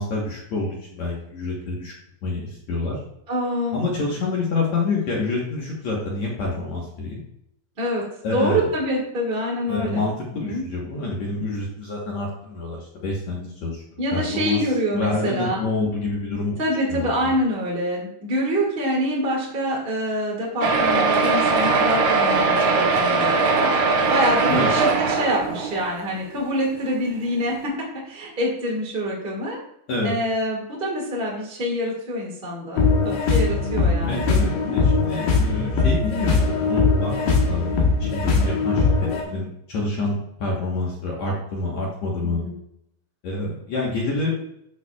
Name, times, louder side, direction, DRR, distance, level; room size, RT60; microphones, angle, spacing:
voice 1, 0.0-1.9 2.2-3.0 3.7-7.2 8.2-8.6 9.7-13.8 14.1-14.6 14.9-16.6 16.9-17.0 24.5-24.7 29.9-30.1 34.1-38.9 39.3-42.4 43.2-44.3, left 3 dB, 60° left, -3 dB, 2.0 m, -27 dB
voice 2, 3.3-3.8 7.8-8.0 8.3-10.0 10.4-10.6 14.0-15.6 16.6-23.7 24.1-29.6 30.0-34.7 42.2-42.5, equal, 25° right, -3 dB, 1.1 m, -26 dB
sound 1, 20.6-26.1 26.7-26.8 27.1-27.2 27.5-27.6, right 4 dB, 85° right, 3.1 m, -20 dB
sound 2, 32.8-39.2, left 4 dB, 75° left, 3.3 m, -20 dB
12.5 x 5.7 x 2.4 m, 0.77 s
omnidirectional pair, 4.4 m